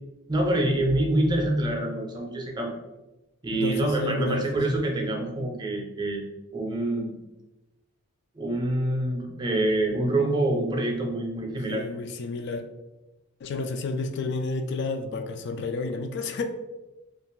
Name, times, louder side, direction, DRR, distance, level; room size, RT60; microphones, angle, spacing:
voice 1, 0.3-2.7 3.4-6.2 6.5-7.1 8.3-11.9, right 1 dB, 20° right, 0 dB, 0.5 m, -26 dB
voice 2, 3.5-4.6 11.7-12.7 13.4-16.4, left 3 dB, 55° left, 7 dB, 0.3 m, -31 dB
2.4 x 2.4 x 3.0 m, 1.0 s
head